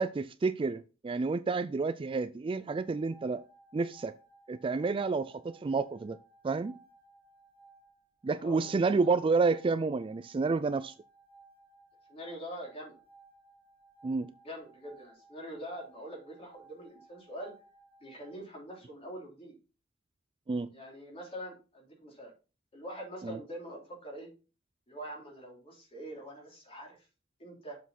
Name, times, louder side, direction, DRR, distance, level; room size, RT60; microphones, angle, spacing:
voice 1, 0.0-3.4 3.7-4.1 4.5-6.2 6.4-6.7 8.2-10.9 14.0-14.3 20.5-20.7 23.2-23.4, right 4 dB, 25° right, 0.3 m, -30 dB
sound 1, 2.6-18.4, right 3 dB, 10° left, 4.7 m, -60 dB
voice 2, 8.4-8.7 9.0-9.1 12.1-12.9 14.4-17.5 18.0-19.5 20.7-22.3 22.7-24.3 24.9-27.0 27.4-27.8, equal, 30° left, 3.2 m, -44 dB
7.1 x 6.0 x 4.2 m
head